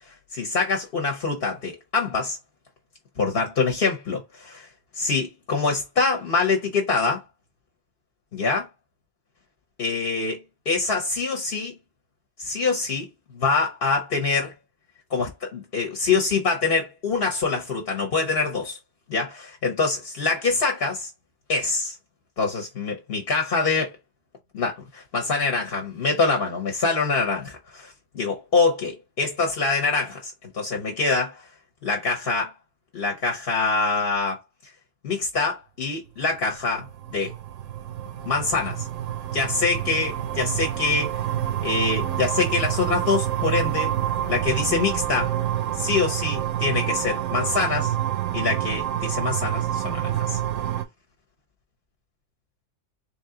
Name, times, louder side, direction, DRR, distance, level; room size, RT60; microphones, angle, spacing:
voice 1, 0.3-2.4 3.2-4.7 5.0-7.2 8.3-8.7 9.8-10.4 10.7-11.7 12.4-13.1 13.3-14.5 15.1-18.8 19.1-21.1 21.5-21.9 22.4-23.9 24.5-31.4 31.8-32.5 32.9-34.4 35.0-36.9 37.1-37.3 38.3-38.9 39.3-41.1 41.6-43.9 44.3-45.3 45.8-47.9 48.3-50.4, left 4 dB, 55° left, 1.0 m, -25 dB
sound 1, 36.5-50.8, right 11 dB, 85° right, 0.9 m, -27 dB
3.5 x 2.8 x 3.7 m
omnidirectional pair, 1.3 m